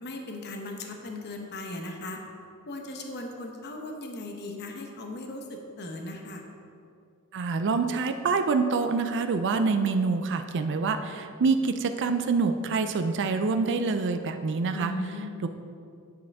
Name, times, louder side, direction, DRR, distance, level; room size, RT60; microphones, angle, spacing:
voice 1, 0.0-2.2 2.7-6.4 14.7-15.4, left 2 dB, 50° left, 3 dB, 0.9 m, -37 dB
voice 2, 7.3-14.9 15.4-15.5, right 4 dB, 55° right, 8 dB, 0.4 m, -26 dB
9.2 x 7.6 x 3.5 m, 2.4 s
head